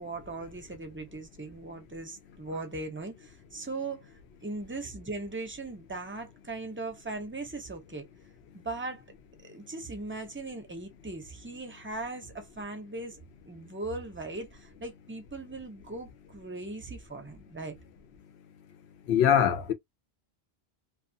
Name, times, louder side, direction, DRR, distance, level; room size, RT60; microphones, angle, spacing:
voice 1, 0.0-8.1 8.5-9.0 9.4-13.2 13.5-17.8, right 2 dB, 15° right, 0.4 m, -39 dB
voice 2, 19.1-19.7, left 9 dB, 85° left, 0.9 m, -22 dB
2.3 x 2.3 x 2.6 m
omnidirectional pair, 1.1 m